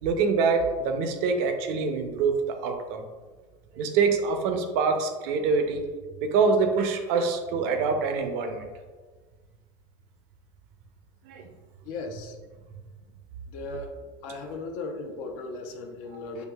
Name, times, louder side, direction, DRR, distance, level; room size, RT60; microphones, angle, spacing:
voice 1, 0.0-3.0 3.7-5.8 6.2-8.7 11.2-11.5 16.1-16.2, right 4 dB, 70° right, 6 dB, 0.5 m, -25 dB
voice 2, 11.8-12.4 13.5-14.0 14.2-16.5, left 3 dB, 70° left, 4 dB, 0.5 m, -37 dB
4.6 x 2.5 x 2.2 m, 1.4 s
supercardioid pair, 90°, 16 cm